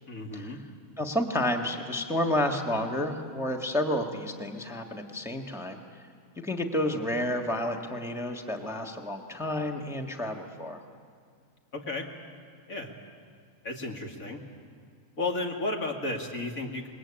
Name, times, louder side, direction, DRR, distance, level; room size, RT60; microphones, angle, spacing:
voice 1, 0.1-0.6 11.7-12.1 12.7-12.9 13.6-14.4 15.2-16.9, left 2 dB, 65° left, 1 dB, 2.7 m, -33 dB
voice 2, 1.0-5.8 6.4-10.8, left 1 dB, ahead, 2 dB, 1.4 m, -30 dB
27.0 x 21.5 x 8.7 m, 2.1 s
omnidirectional pair, 1.5 m